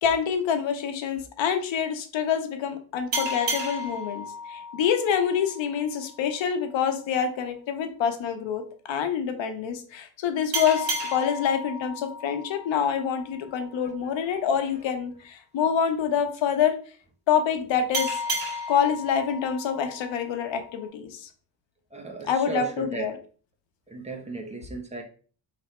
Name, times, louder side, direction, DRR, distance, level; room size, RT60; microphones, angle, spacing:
voice 1, 0.0-16.8 17.3-18.2 18.7-21.3 22.3-23.1, left 7 dB, 80° left, 7 dB, 0.9 m, -26 dB
sound 1, 3.1-6.3 10.5-13.8 17.9-20.9, equal, 50° right, 1.7 m, -33 dB
voice 2, 21.9-23.1 23.9-25.0, right 3 dB, 15° right, 2 dB, 0.8 m, -35 dB
3.4 x 3.1 x 4.3 m, 0.41 s
cardioid pair, 145°, 45 cm